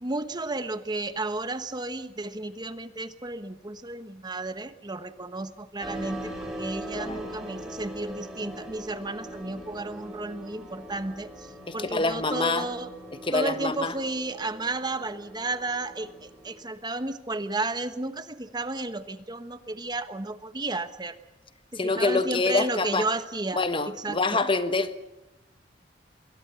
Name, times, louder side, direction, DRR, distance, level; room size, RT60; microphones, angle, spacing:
voice 1, 0.0-11.5 11.7-12.9 13.3-21.1 21.7-23.6 23.9-24.4, right 2 dB, 25° right, 1.2 m, -33 dB
sound 1, 5.8-16.6, right 1 dB, 5° right, 6.4 m, -41 dB
voice 2, 6.9-7.3 11.7-12.7 13.2-13.9 21.7-23.1 23.5-25.0, left 3 dB, 30° left, 1.1 m, -26 dB
25.5 x 22.5 x 7.0 m
head